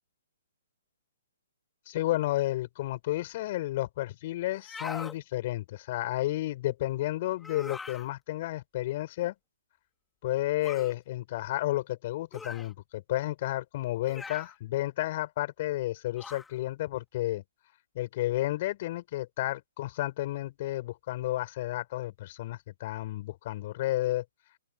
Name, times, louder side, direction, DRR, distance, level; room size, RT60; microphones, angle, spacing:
voice 1, 1.9-9.3 10.2-17.4 18.0-24.2, left 16 dB, 35° left, 7.1 m, -32 dB
sound 1, 4.5-5.2 7.4-8.1 10.6-10.9 12.3-12.7 14.1-14.5 16.2-16.5, left 4 dB, 5° left, 3.1 m, -41 dB
open air
hypercardioid pair, 170°, 0 cm